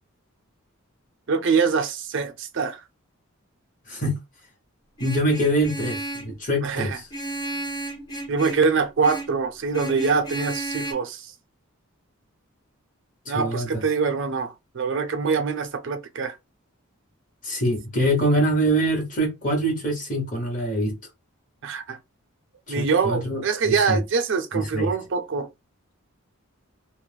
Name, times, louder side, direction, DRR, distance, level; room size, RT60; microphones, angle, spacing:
voice 1, 1.3-2.8 6.6-7.0 8.3-11.3 13.3-16.4 21.6-22.0 22.7-25.5, right 5 dB, 55° right, 0.5 m, -24 dB
voice 2, 3.9-4.2 5.0-7.0 13.2-13.8 17.4-20.9 22.7-24.0 24.5-24.9, right 1 dB, 35° left, 1.0 m, -24 dB
Vehicle horn car horn honking, 5.0-6.4 7.1-8.7 9.0-9.4 9.7-10.9, right 1 dB, 20° left, 0.6 m, -33 dB
2.3 x 2.0 x 3.2 m
head